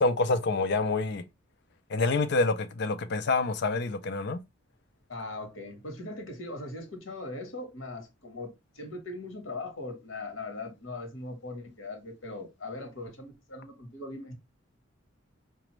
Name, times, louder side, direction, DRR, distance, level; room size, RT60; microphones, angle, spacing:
voice 1, 0.0-1.2 1.9-4.4, left 3 dB, 60° left, 0.5 m, -27 dB
voice 2, 5.1-14.3, left 2 dB, 80° left, 1.2 m, -40 dB
4.9 x 2.3 x 3.0 m
head